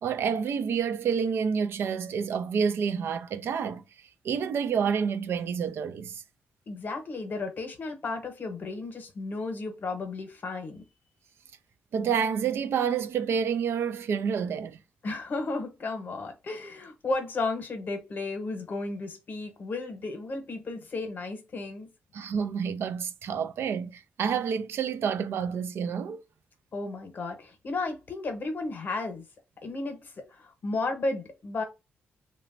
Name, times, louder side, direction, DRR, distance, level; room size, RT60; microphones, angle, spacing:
voice 1, 0.0-3.8 4.2-6.2 11.9-14.8 22.1-26.2, right 7 dB, 70° right, 0.3 m, -28 dB
voice 2, 6.7-10.8 15.0-21.9 26.7-29.2 29.6-31.6, left 3 dB, 50° left, 0.8 m, -33 dB
2.9 x 2.2 x 2.5 m
cardioid pair, 115°, 4 cm